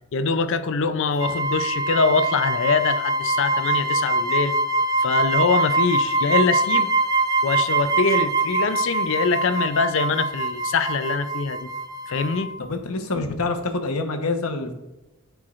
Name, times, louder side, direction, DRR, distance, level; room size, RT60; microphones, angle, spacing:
voice 1, 0.1-4.6 5.0-6.9 7.4-11.7 12.1-12.5, left 4 dB, 60° left, 0.5 m, -23 dB
sound 1, 1.2-12.6, right 2 dB, 15° right, 0.4 m, -24 dB
voice 2, 12.6-14.7, left 3 dB, 80° left, 1.0 m, -26 dB
12.5 x 4.6 x 2.5 m
head